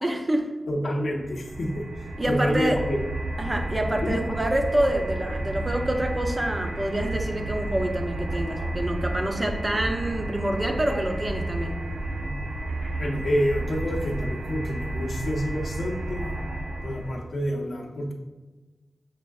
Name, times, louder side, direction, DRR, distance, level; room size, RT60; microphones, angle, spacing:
voice 1, 0.0-0.5 2.2-2.8 3.4-11.8, right 1 dB, 30° right, 3 dB, 0.5 m, -27 dB
voice 2, 0.7-1.9 2.3-3.0 4.0-4.2 13.0-16.3 16.8-18.1, equal, 70° left, 0 dB, 0.6 m, -28 dB
sound 1, 1.1-17.3, right 1 dB, 80° right, 0.4 m, -32 dB
6.0 x 2.4 x 2.3 m, 1.2 s
cardioid pair, 60°, 0 cm